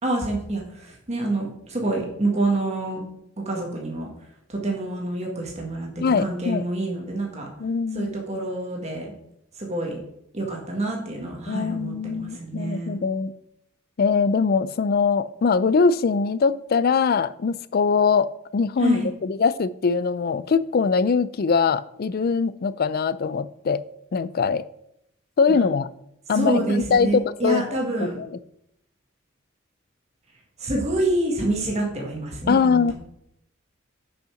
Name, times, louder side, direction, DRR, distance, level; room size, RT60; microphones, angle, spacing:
voice 1, 0.0-3.0 3.4-4.1 4.6-7.5 7.9-9.1 9.6-10.0 10.3-13.0 18.8-19.1 25.5-25.6 26.3-28.2 30.6-32.9, right 2 dB, 35° right, -1 dB, 1.6 m, -27 dB
voice 2, 6.0-6.6 7.6-8.2 11.5-13.3 14.0-23.8 24.1-24.6 25.4-25.9 26.3-28.3 32.5-32.9, left 5 dB, 50° left, 16 dB, 0.4 m, -22 dB
6.5 x 5.6 x 5.8 m, 0.77 s
head